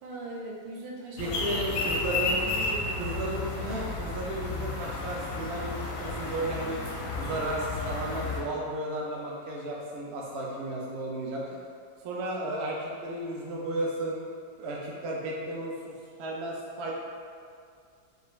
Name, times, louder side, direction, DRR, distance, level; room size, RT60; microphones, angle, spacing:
voice 1, 0.0-3.3, right 2 dB, 85° right, -3 dB, 1.4 m, -40 dB
sound 1, 1.2-8.4, left 3 dB, 65° left, 0.8 m, -32 dB
voice 2, 1.2-2.4 3.0-6.9 7.2-11.6 12.0-14.2 14.6-16.9, right 1 dB, 65° right, -3 dB, 0.6 m, -34 dB
5.4 x 2.5 x 3.1 m, 2.3 s
omnidirectional pair, 1.9 m